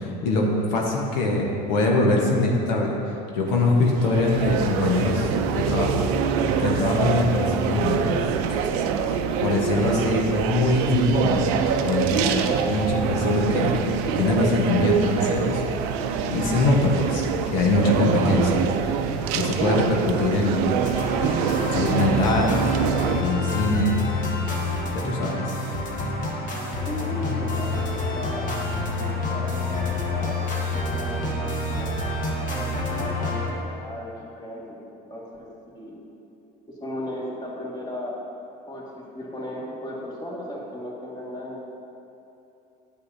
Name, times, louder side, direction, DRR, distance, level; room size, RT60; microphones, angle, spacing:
voice 1, 0.0-3.0 3.3-6.0 6.6-8.2 9.4-11.5 11.8-13.8 14.2-15.6 16.3-17.2 17.5-18.5 19.3-20.7 21.7-22.6 23.2-24.0 24.9-25.5, left 2 dB, 90° left, -1 dB, 1.1 m, -23 dB
sound 1, 3.5-23.2, right 7 dB, 80° right, 0.5 m, -25 dB
sound 2, 20.8-33.5, left 2 dB, 45° left, 1.4 m, -28 dB
voice 2, 26.9-28.5 29.2-35.5 35.7-36.0 36.7-38.2 38.7-38.9 39.1-41.6, left 1 dB, 20° left, -4 dB, 1.8 m, -36 dB
9.7 x 7.9 x 2.7 m, 2.8 s
supercardioid pair, 100°, 20 cm